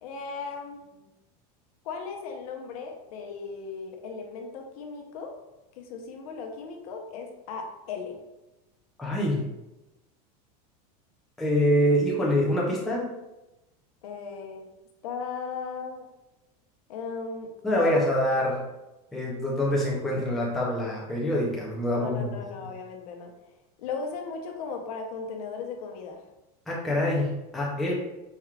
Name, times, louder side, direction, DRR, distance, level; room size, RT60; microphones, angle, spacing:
voice 1, 0.0-1.1 1.8-5.3 5.8-8.2 14.0-14.7 15.0-16.1 16.9-18.1 21.9-23.3 23.8-26.2, left 5 dB, 65° left, 3 dB, 0.7 m, -36 dB
voice 2, 9.0-9.4 11.4-13.0 17.6-18.6 19.1-22.3 26.7-27.9, equal, ahead, -4 dB, 0.4 m, -25 dB
4.5 x 3.5 x 2.3 m, 0.96 s
supercardioid pair, 175°, 20 cm